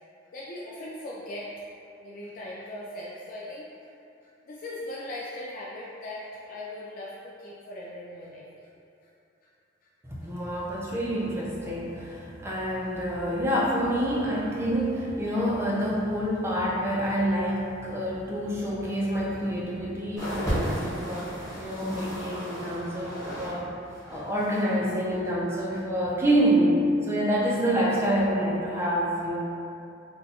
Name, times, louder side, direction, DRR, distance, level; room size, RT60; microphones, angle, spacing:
voice 1, 0.3-1.6 2.0-3.9 4.5-8.5 8.7-8.8, left 1 dB, 45° left, -6 dB, 0.3 m, -39 dB
voice 2, 10.1-23.7 24.1-26.8 27.1-29.4, equal, 15° right, -6 dB, 0.5 m, -27 dB
sound 1, 20.2-23.6 23.9-24.8 25.5-25.6, equal, 15° left, 0.8 m, -34 dB
2.6 x 2.3 x 4.0 m, 2.7 s
head